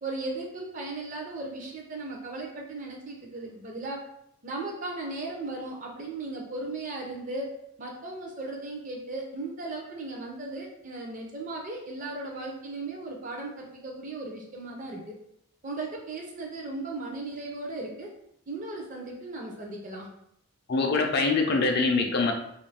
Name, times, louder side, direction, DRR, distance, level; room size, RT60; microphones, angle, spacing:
voice 1, 0.0-4.0 4.4-7.5 7.8-15.2 15.6-18.1 18.5-20.1, right 2 dB, 35° right, 0 dB, 0.5 m, -36 dB
voice 2, 20.7-22.3, left 3 dB, 45° left, 3 dB, 0.4 m, -24 dB
2.4 x 2.3 x 3.3 m, 0.74 s
head